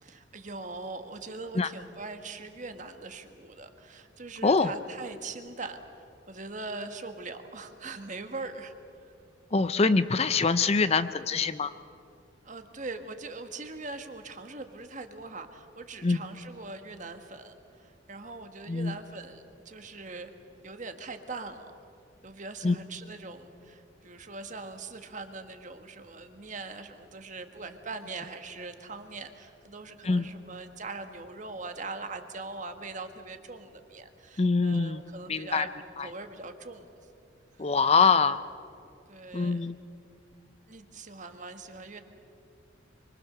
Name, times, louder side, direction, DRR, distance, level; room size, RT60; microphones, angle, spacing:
voice 1, 0.0-8.7 9.0-9.1 12.4-20.3 20.6-21.7 22.2-35.7 36.0-36.8 37.6-37.7 39.1-39.7 40.7-42.0, right 3 dB, 40° right, 7 dB, 1.5 m, -41 dB
voice 2, 4.4-4.7 9.5-11.7 16.0-16.2 18.7-18.9 22.6-22.8 30.0-30.3 34.4-35.0 35.3-35.7 36.0-36.1 37.6-38.4 39.3-39.7, left 4 dB, 30° left, 13 dB, 0.5 m, -24 dB
25.5 x 24.5 x 6.7 m, 2.5 s
head